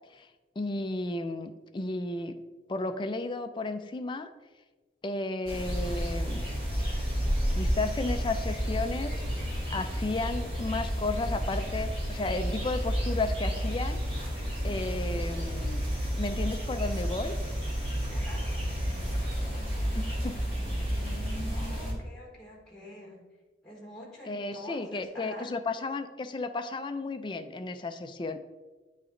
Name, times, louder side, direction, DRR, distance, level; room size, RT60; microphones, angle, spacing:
voice 1, 0.6-2.4 2.7-4.3 5.0-6.4 7.5-14.0 14.6-15.8 16.1-17.4 19.9-20.4 24.3-28.4, left 2 dB, 25° left, 8 dB, 0.4 m, -33 dB
sound 1, 5.5-21.9, equal, 30° right, 1.6 m, -31 dB
voice 2, 21.5-23.2 23.6-25.5, left 1 dB, 5° left, -4 dB, 1.2 m, -46 dB
9.4 x 3.2 x 3.7 m, 1.3 s
head